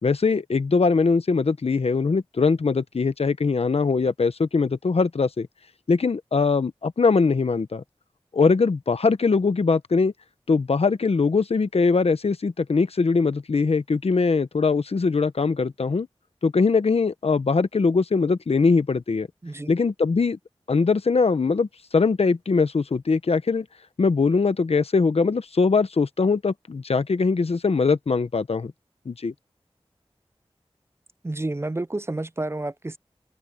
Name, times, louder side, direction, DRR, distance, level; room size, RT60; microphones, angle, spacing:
voice 1, 0.0-5.5 5.9-7.8 8.3-10.1 10.5-16.1 16.4-19.3 19.7-20.4 20.7-21.7 21.9-23.7 24.0-28.7 29.1-29.3, left 4 dB, 80° left, 1.0 m, -21 dB
voice 2, 31.2-33.0, right 2 dB, 25° right, 0.5 m, -30 dB
open air
wide cardioid pair, 65°, 10 cm